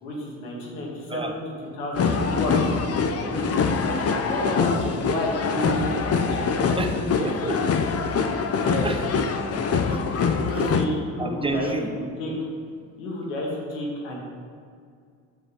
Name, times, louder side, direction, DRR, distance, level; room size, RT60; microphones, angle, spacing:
voice 1, 0.0-2.6 3.1-4.0 4.3-6.0 6.3-7.3 8.6-8.9 10.4-12.3 13.0-14.2, left 1 dB, 85° left, -3 dB, 2.0 m, -31 dB
sound 1, 2.0-10.9, left 5 dB, 40° left, 0.8 m, -24 dB
voice 2, 6.8-7.7 8.8-9.0 9.6-10.6 11.2-11.9, right 2 dB, 15° right, 5 dB, 1.0 m, -31 dB
7.4 x 5.3 x 6.5 m, 2.3 s
supercardioid pair, 75°, 37 cm